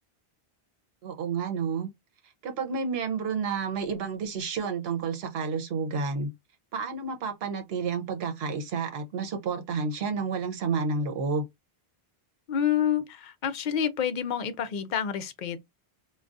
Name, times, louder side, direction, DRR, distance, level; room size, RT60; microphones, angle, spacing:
voice 1, 1.0-1.9 2.4-6.3 6.7-11.4, right 5 dB, 75° right, 1.0 m, -30 dB
voice 2, 12.5-15.6, left 9 dB, 60° left, 0.6 m, -28 dB
3.8 x 2.3 x 2.3 m
omnidirectional pair, 1.1 m